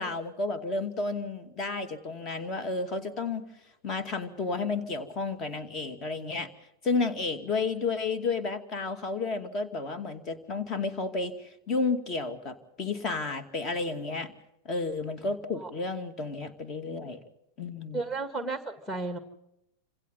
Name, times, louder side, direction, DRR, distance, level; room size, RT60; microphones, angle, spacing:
voice 1, 0.0-3.4 3.8-6.5 6.8-14.3 14.6-17.2 17.6-18.0, left 3 dB, 30° left, 10 dB, 2.4 m, -32 dB
voice 2, 17.9-19.2, right 3 dB, 5° left, 8 dB, 2.0 m, -33 dB
28.0 x 26.5 x 4.0 m, 0.82 s
figure-of-eight pair, 90°, 0 cm